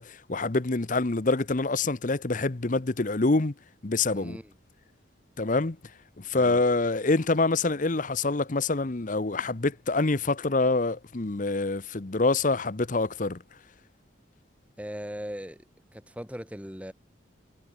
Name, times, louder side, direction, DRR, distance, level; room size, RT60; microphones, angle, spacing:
voice 1, 0.0-3.5 3.8-4.4 5.4-5.8 6.2-13.4, left 3 dB, 40° left, 0.9 m, -26 dB
voice 2, 4.1-4.5 6.3-6.6 14.8-15.6 15.9-16.9, equal, 5° right, 2.4 m, -39 dB
head